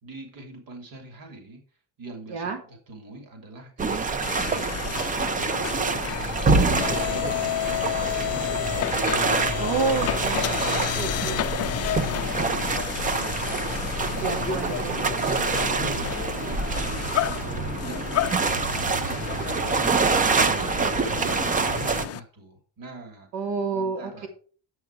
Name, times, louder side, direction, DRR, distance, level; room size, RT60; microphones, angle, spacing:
voice 1, 0.0-1.6 2.0-9.5 10.0-13.5 14.0-23.3 23.7-24.3, right 2 dB, 55° right, 4 dB, 2.9 m, -44 dB
sound 1, 3.8-22.1, right 4 dB, 20° right, 0.4 m, -26 dB
sound 2, 4.2-22.2, left 12 dB, 40° left, 0.4 m, -31 dB
voice 2, 9.6-11.5 14.2-15.0 20.2-20.7 23.3-24.3, right 4 dB, 85° right, 2 dB, 2.6 m, -30 dB
9.9 x 7.9 x 4.6 m, 0.41 s
cardioid pair, 175°, 41 cm